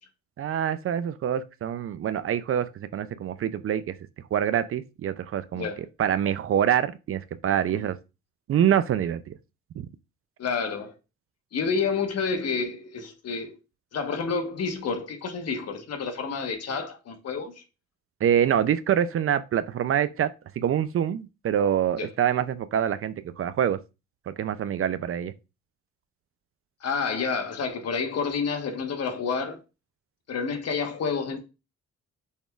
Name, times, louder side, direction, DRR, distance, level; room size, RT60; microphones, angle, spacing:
voice 1, 0.4-3.9 4.3-5.7 6.0-8.0 8.5-9.4 9.8-9.9 18.2-20.3 20.6-23.8 24.3-25.3, right 9 dB, 45° right, 0.4 m, -25 dB
voice 2, 10.4-10.9 11.5-13.6 13.9-17.6 22.0-22.1 26.8-29.6 30.3-31.4, left 5 dB, 55° left, 1.2 m, -29 dB
6.3 x 3.5 x 2.3 m
cardioid pair, 90°, 30 cm